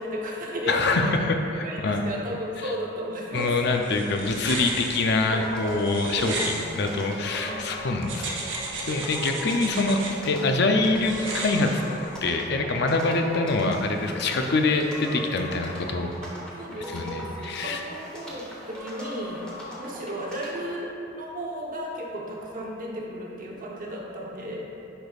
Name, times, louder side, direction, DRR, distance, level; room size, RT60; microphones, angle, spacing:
voice 1, 0.0-1.1 1.6-3.6 6.1-7.0 7.4-7.7 16.2-19.4 19.8-24.6, equal, 45° right, -2 dB, 0.9 m, -34 dB
voice 2, 0.7-2.0 2.6-2.7 3.3-8.3 8.9-11.8 12.2-16.1 16.9-17.8, left 3 dB, 60° left, 4 dB, 0.5 m, -25 dB
sound 1, 3.4-7.5 8.0-10.1 11.0-12.3, right 2 dB, 75° right, 1.1 m, -35 dB
sound 2, 5.3-20.7, equal, 5° left, 1.2 m, -40 dB
9.9 x 5.1 x 2.4 m, 2.7 s
head